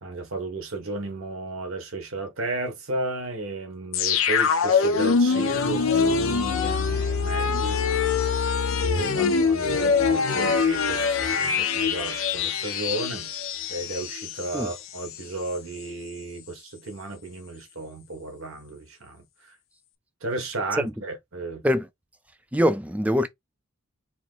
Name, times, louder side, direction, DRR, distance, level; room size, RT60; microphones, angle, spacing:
voice 1, 0.0-7.8 8.8-13.3 13.7-19.6 20.2-21.6, right 2 dB, 80° right, 1.4 m, -34 dB
sound 1, 3.9-14.7 15.1-15.2, left 5 dB, 80° left, 0.7 m, -24 dB
voice 2, 22.5-23.3, equal, 5° right, 0.4 m, -23 dB
4.4 x 2.1 x 3.8 m
head